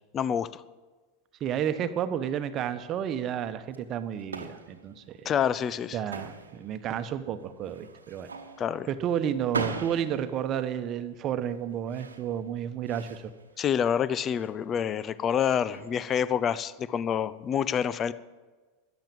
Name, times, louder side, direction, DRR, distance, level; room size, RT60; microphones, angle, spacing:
voice 1, 0.1-0.6 5.2-6.0 8.6-8.9 13.6-18.1, left 8 dB, 35° left, 16 dB, 0.6 m, -27 dB
voice 2, 1.4-5.3 5.9-8.3 8.9-13.2, right 9 dB, 40° right, 11 dB, 1.1 m, -31 dB
sound 1, 3.6-16.6, right 4 dB, 85° right, 1.1 m, -41 dB
13.5 x 10.5 x 7.2 m, 1.3 s
hypercardioid pair, 90°, 0 cm